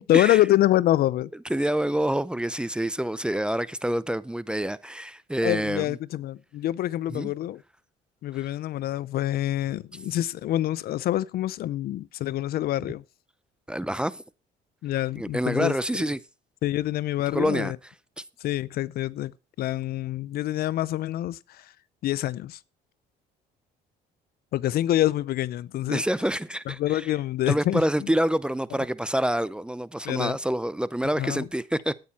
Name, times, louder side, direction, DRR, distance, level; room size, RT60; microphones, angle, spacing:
voice 1, 0.0-1.3 5.4-7.6 8.2-13.0 14.8-15.8 16.6-17.8 18.4-19.3 19.6-21.7 22.0-22.6 24.5-26.0 26.7-28.1 30.0-30.4 31.2-31.5, left 14 dB, 65° left, 0.6 m, -26 dB
voice 2, 1.5-6.0 7.1-7.3 13.7-14.2 15.2-16.2 17.3-17.7 25.9-27.1 27.5-31.9, right 1 dB, 5° right, 0.6 m, -27 dB
13.0 x 9.5 x 4.2 m
cardioid pair, 110°, 17 cm